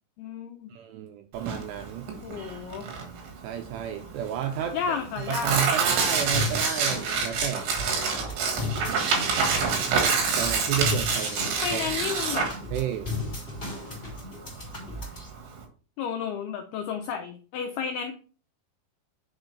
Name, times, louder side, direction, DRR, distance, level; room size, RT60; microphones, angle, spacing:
voice 1, 0.2-0.7 2.2-2.9 4.7-5.7 11.6-12.5 16.0-18.1, left 7 dB, 85° left, 5 dB, 2.2 m, -32 dB
voice 2, 0.7-2.1 3.4-5.0 5.3-7.7 8.9-9.4 10.4-11.9 12.7-13.1, right 9 dB, 85° right, 6 dB, 2.4 m, -32 dB
Tearing, 1.4-15.6, right 5 dB, 70° right, 3.6 m, -27 dB
sound 1, 6.3-15.3, left 3 dB, 10° left, 2.7 m, -35 dB
8.0 x 6.0 x 3.3 m, 0.39 s
omnidirectional pair, 5.4 m